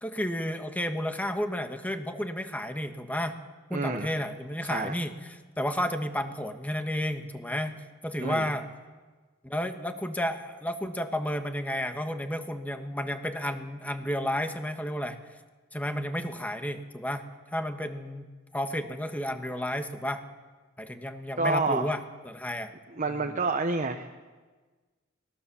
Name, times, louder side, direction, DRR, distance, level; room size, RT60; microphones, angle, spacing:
voice 1, 0.0-3.3 3.7-8.6 9.4-15.2 15.7-17.2 17.5-18.3 18.5-20.2 20.8-22.7 23.1-23.3, left 1 dB, 10° left, 6 dB, 1.4 m, -32 dB
voice 2, 3.7-4.1 4.7-4.9 8.2-8.5 21.4-21.9 22.9-24.1, right 3 dB, 40° right, 4 dB, 1.1 m, -28 dB
24.5 x 19.0 x 7.1 m, 1.4 s
head